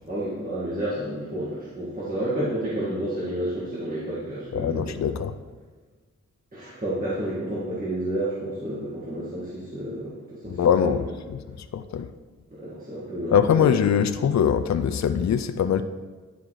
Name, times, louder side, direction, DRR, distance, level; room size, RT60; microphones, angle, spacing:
voice 1, 0.0-5.0 6.5-11.1 12.6-13.7, right 1 dB, 30° right, -9 dB, 1.8 m, -30 dB
voice 2, 4.5-5.4 10.6-11.0 11.7-12.1 13.3-15.8, left 8 dB, 65° left, 9 dB, 0.5 m, -22 dB
10.0 x 4.7 x 4.0 m, 1.3 s
wide cardioid pair, 95°, 30 cm